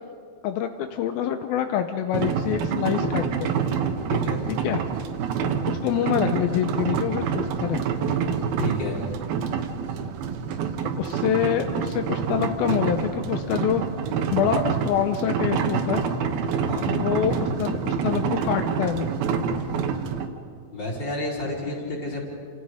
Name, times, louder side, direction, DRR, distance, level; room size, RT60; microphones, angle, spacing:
voice 1, 0.4-3.5 4.5-4.8 5.7-7.8 11.0-13.8 14.3-16.0 16.9-19.1, left 10 dB, 80° left, 7 dB, 2.6 m, -26 dB
sound 1, 2.1-20.3, right 6 dB, 85° right, 3.1 m, -27 dB
voice 2, 8.6-9.0 16.6-16.9 20.7-22.2, left 2 dB, 30° left, -3 dB, 5.0 m, -30 dB
29.0 x 27.5 x 5.0 m, 2.3 s
omnidirectional pair, 4.2 m